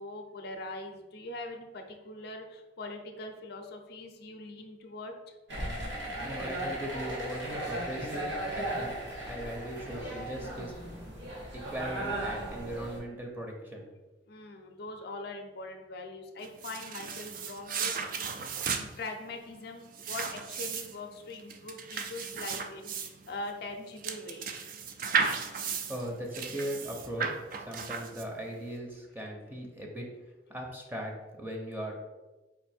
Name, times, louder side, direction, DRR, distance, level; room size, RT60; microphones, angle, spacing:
voice 1, 0.0-5.3 14.3-18.0 18.7-24.5 25.6-25.9, left 2 dB, 60° left, 4 dB, 0.5 m, -42 dB
sound 1, 5.5-13.0, right 1 dB, 90° right, 1.3 m, -36 dB
voice 2, 6.2-8.9 9.3-10.7 11.5-13.9 25.9-27.4 27.7-30.1 30.5-31.9, equal, 10° right, 0 dB, 0.7 m, -39 dB
sound 2, 16.4-28.5, right 5 dB, 50° right, 0.4 m, -35 dB
4.5 x 2.6 x 4.2 m, 1.1 s
head